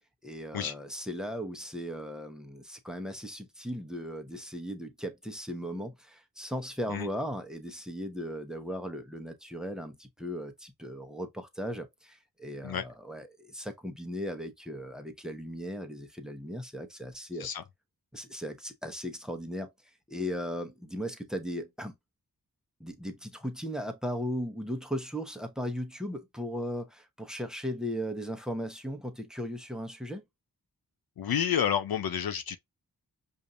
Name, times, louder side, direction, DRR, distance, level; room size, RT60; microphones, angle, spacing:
voice 1, 0.2-17.5 18.1-22.0 22.8-30.2, equal, ahead, 0.9 m, -37 dB
voice 2, 31.2-32.6, left 8 dB, 65° left, 0.5 m, -29 dB
5.1 x 2.7 x 2.5 m
cardioid pair, 45°, 39 cm